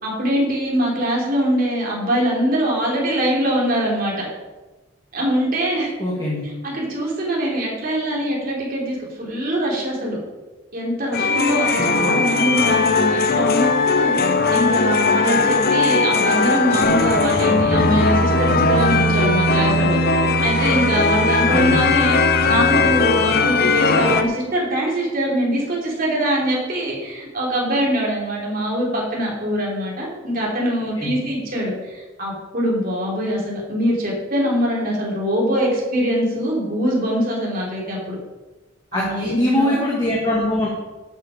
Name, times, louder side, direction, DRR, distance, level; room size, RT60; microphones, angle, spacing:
voice 1, 0.0-4.3 5.1-5.9 6.6-10.2 10.7-20.0 20.4-22.2 22.4-38.2 38.9-39.8, equal, 40° right, -3 dB, 3.2 m, -23 dB
voice 2, 6.0-6.4 11.8-12.1 21.5-21.8 31.0-31.1 38.9-40.7, left 1 dB, 20° left, -5 dB, 1.9 m, -22 dB
sound 1, 11.1-24.2, left 4 dB, 45° left, 0.7 m, -19 dB
sound 2, 16.8-24.2, right 3 dB, 85° left, 2.1 m, -25 dB
12.5 x 8.3 x 5.0 m, 1.2 s
head